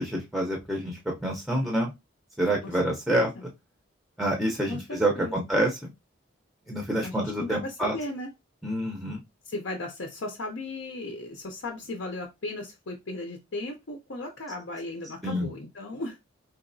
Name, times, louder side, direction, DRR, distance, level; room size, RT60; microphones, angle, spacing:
voice 1, 0.0-1.9 2.4-3.3 4.2-5.9 6.7-7.9 8.6-9.2 15.2-15.5, right 1 dB, ahead, 0 dB, 0.6 m, -27 dB
voice 2, 4.7-5.4 7.0-8.3 9.5-16.2, left 2 dB, 60° left, 3 dB, 0.6 m, -36 dB
4.0 x 2.8 x 2.6 m, 0.22 s
head